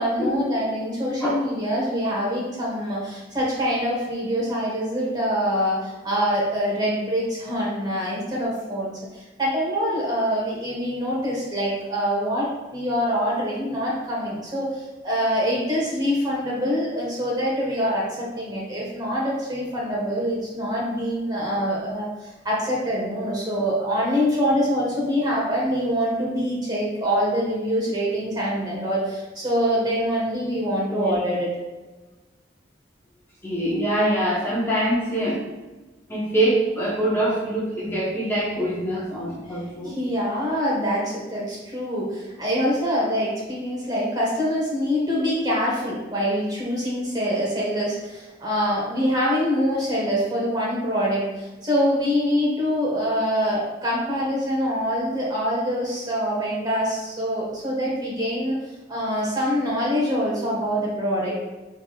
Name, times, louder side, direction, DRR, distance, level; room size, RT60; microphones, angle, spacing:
voice 1, 0.0-31.5 39.5-58.5 58.9-61.3, equal, 25° right, -5 dB, 1.4 m, -25 dB
voice 2, 33.4-35.4 36.1-40.0 49.8-49.9 61.3-61.4, right 1 dB, 15° left, -8 dB, 1.0 m, -24 dB
6.1 x 3.5 x 2.4 m, 1.2 s
head